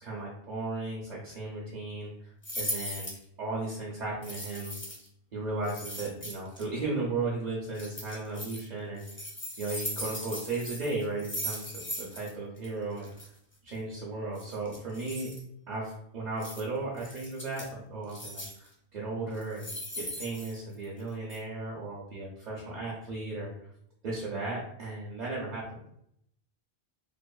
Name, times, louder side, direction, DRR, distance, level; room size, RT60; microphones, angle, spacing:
voice 1, 0.0-3.1 3.4-4.8 5.3-9.0 9.6-13.1 13.6-15.3 15.7-23.7 24.0-25.9, right 3 dB, 50° right, -5 dB, 0.6 m, -35 dB
sound 1, 2.4-3.2 4.2-5.1 5.6-6.6 7.7-8.6 9.0-12.3 12.6-12.7 13.0-13.3 14.3-15.4 16.4-16.6 17.0-17.7 18.1-18.7 19.3-21.0 21.3-21.4, equal, 15° left, 0.4 m, -39 dB
2.6 x 2.5 x 2.2 m, 0.72 s
omnidirectional pair, 1.1 m